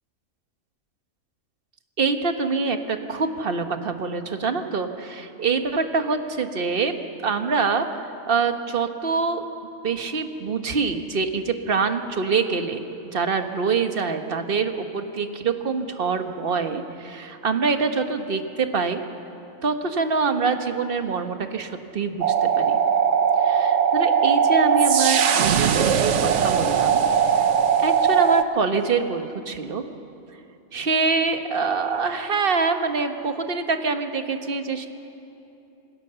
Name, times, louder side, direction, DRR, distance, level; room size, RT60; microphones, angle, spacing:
voice 1, 2.0-6.9 7.2-7.9 8.3-9.4 9.8-12.8 13.1-19.0 19.6-22.8 23.4-27.0 27.3-27.5 27.8-29.8 30.7-34.9, right 4 dB, 45° right, 7 dB, 1.4 m, -25 dB
sound 1, 22.2-28.4, right 7 dB, 65° right, 1.1 m, -19 dB
26.5 x 18.0 x 6.9 m, 2.8 s
omnidirectional pair, 1.4 m